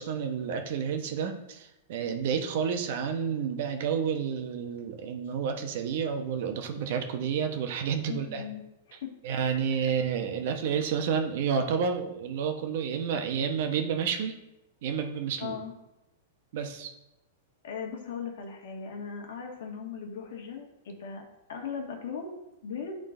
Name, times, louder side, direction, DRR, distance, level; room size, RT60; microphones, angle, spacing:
voice 1, 0.0-8.4 9.2-14.3 14.8-15.5 16.5-16.9, right 7 dB, 60° right, 5 dB, 0.9 m, -30 dB
voice 2, 8.0-8.6 8.9-9.9 15.4-15.7 17.6-22.3 22.6-23.0, left 6 dB, 70° left, 2 dB, 1.5 m, -38 dB
8.9 x 3.8 x 3.8 m, 0.91 s
hypercardioid pair, 140°, 0 cm